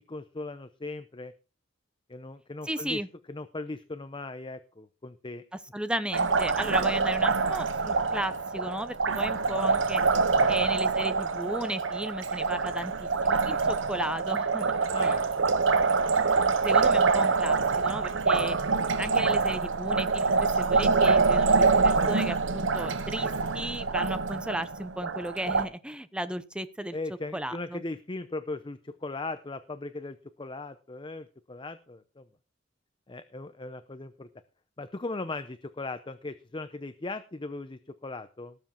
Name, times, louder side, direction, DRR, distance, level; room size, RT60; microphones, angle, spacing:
voice 1, 0.0-1.3 2.1-3.0 3.3-5.4 10.3-10.6 14.9-15.3 22.0-22.2 26.9-32.2 33.1-34.3 34.8-38.5, left 2 dB, 25° left, 11 dB, 0.7 m, -38 dB
voice 2, 2.6-3.1 5.7-10.0 10.5-14.7 15.0-15.2 16.6-18.6 19.0-27.0 27.3-27.8, right 1 dB, 5° right, 12 dB, 0.8 m, -35 dB
Liquid, 6.1-25.6, right 4 dB, 80° right, 0.9 m, -25 dB
18.5 x 7.4 x 4.4 m, 0.34 s
head